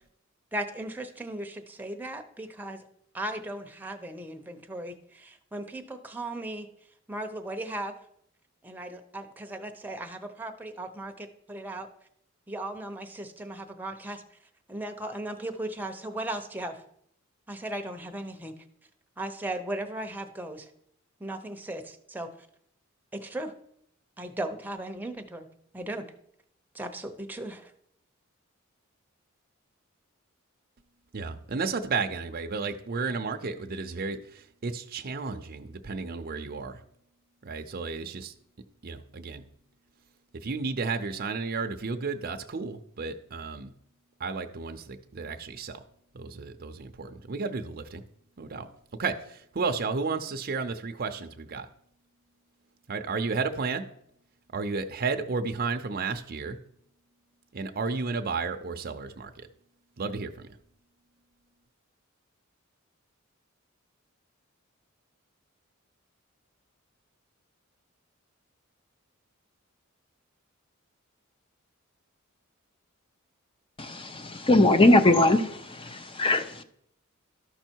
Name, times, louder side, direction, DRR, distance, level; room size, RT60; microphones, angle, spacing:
voice 1, 0.5-2.8 3.1-6.7 7.1-8.0 8.6-11.9 12.5-14.2 14.7-16.8 17.5-18.5 19.2-20.7 21.2-22.3 23.1-23.5 24.2-25.5 25.7-26.0 26.7-27.7, right 1 dB, 10° right, 5 dB, 0.8 m, -37 dB
voice 2, 31.1-36.8 37.4-38.3 38.8-39.5 40.3-43.7 44.2-45.8 46.1-48.0 48.4-48.7 49.0-51.7 52.9-53.9 54.5-56.6 57.5-59.5 60.0-60.5, right 4 dB, 45° right, 6 dB, 0.6 m, -32 dB
voice 3, 73.8-76.6, left 2 dB, 25° left, 9 dB, 0.6 m, -21 dB
13.0 x 5.4 x 4.5 m, 0.70 s
head